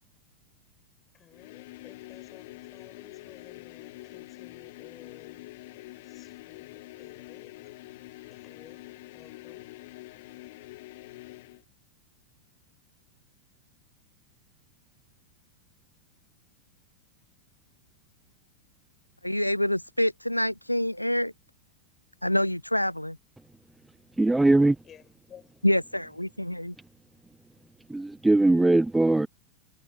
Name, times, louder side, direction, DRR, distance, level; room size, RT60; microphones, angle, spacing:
voice 1, 1.1-5.5 6.0-7.6 8.3-9.7 24.8-25.6, left 9 dB, 25° left, 7.5 m, -55 dB
sound 1, 1.3-11.6, left 20 dB, 50° left, 2.0 m, -46 dB
voice 2, 19.2-21.3 22.2-23.2 25.6-26.7, left 1 dB, 90° left, 0.3 m, -26 dB
voice 3, 24.2-24.8 27.9-29.3, right 2 dB, 5° right, 0.3 m, -20 dB
figure-of-eight pair, 90°, 0 cm